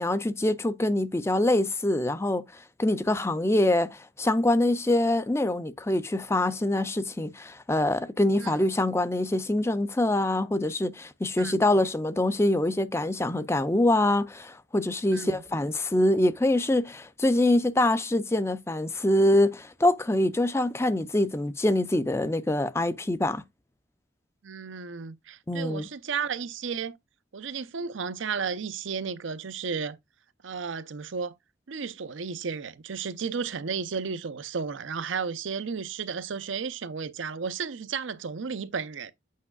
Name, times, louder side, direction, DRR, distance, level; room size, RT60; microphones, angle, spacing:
voice 1, 0.0-23.4 25.5-25.9, left 1 dB, 15° left, 0.5 m, -25 dB
voice 2, 15.1-15.4 24.4-27.0 27.3-30.0 30.4-31.3 31.7-39.1, right 5 dB, 85° right, 0.6 m, -33 dB
8.4 x 5.4 x 2.3 m
head